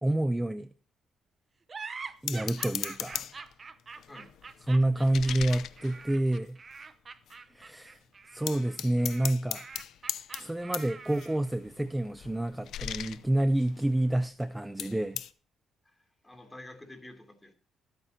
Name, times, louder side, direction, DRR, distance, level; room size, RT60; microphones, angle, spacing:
voice 1, 0.0-0.7 2.2-3.3 4.7-6.6 7.5-8.0 8.3-9.6 10.4-15.2, right 1 dB, 10° right, 12 dB, 0.5 m, -28 dB
sound 1, 1.7-11.5, right 5 dB, 35° right, 0.8 m, -45 dB
sound 2, 2.3-3.5 4.0-6.8 7.3-7.4 7.6-8.0 8.5-14.4 14.8-15.3, left 10 dB, 75° left, 0.6 m, -39 dB
voice 2, 15.8-17.5, left 1 dB, 15° left, 5 dB, 2.9 m, -49 dB
21.0 x 8.9 x 2.8 m, 0.41 s
cardioid pair, 90°, 0 cm